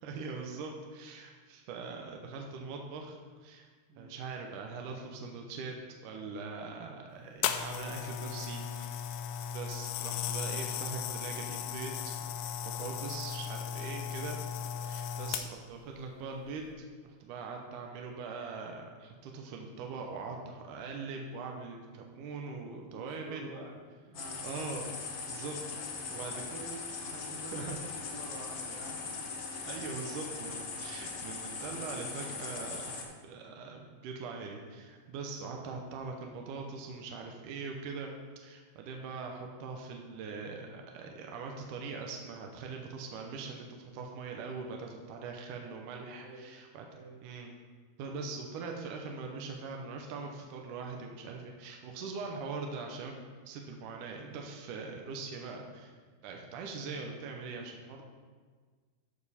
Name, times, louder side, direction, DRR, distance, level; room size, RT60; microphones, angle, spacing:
voice 1, 0.0-3.1 3.4-3.7 4.0-5.8 6.0-9.1 9.5-12.3 12.6-14.4 14.8-16.7 17.0-23.5 24.4-24.9 25.3-25.6 26.1-26.4 27.5-27.8 29.6-38.1 38.4-46.9 47.2-47.5 48.0-53.1 53.4-55.9 56.2-58.0, right 4 dB, 80° right, 2 dB, 1.9 m, -42 dB
sound 1, 7.4-15.8 16.5-16.7, left 8 dB, 90° left, 2.0 m, -36 dB
voice 2, 22.6-23.7 24.1-24.4 25.8-29.0 38.9-39.1 46.2-46.5 46.9-47.2, right 2 dB, 60° right, -2 dB, 3.0 m, -49 dB
sound 2, 24.1-33.0, left 4 dB, 70° left, 1.7 m, -40 dB
13.0 x 5.2 x 4.2 m, 1.5 s
omnidirectional pair, 4.7 m